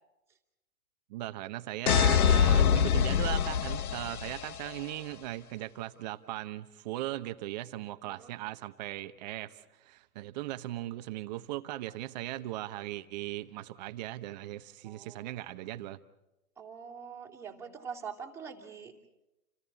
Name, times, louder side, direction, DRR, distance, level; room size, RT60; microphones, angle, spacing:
voice 1, 1.1-16.0, right 15 dB, 30° right, 10 dB, 1.0 m, -38 dB
sound 1, 1.9-4.7, left 8 dB, 80° left, 0.9 m, -25 dB
voice 2, 14.8-15.4 16.6-18.9, right 6 dB, 5° right, -1 dB, 2.8 m, -44 dB
30.0 x 28.5 x 4.2 m, 0.97 s
hypercardioid pair, 140°, 44 cm